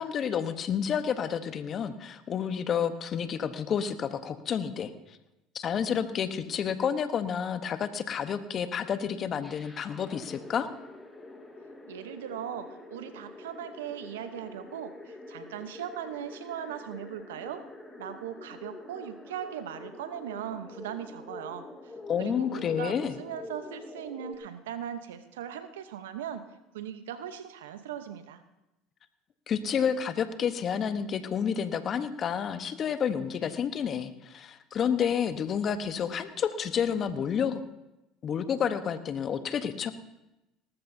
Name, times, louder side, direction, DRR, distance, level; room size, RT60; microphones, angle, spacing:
voice 1, 0.0-4.9 5.5-10.7 22.1-23.2 29.5-37.6 38.2-39.9, left 7 dB, 45° left, 10 dB, 1.0 m, -30 dB
sound 1, 9.4-24.4, left 2 dB, 15° left, 2.1 m, -46 dB
voice 2, 11.9-17.6 18.0-21.9 22.2-26.5 26.7-28.4, right 9 dB, 90° right, 10 dB, 0.9 m, -39 dB
18.5 x 14.0 x 2.7 m, 0.95 s
supercardioid pair, 85°, 0 cm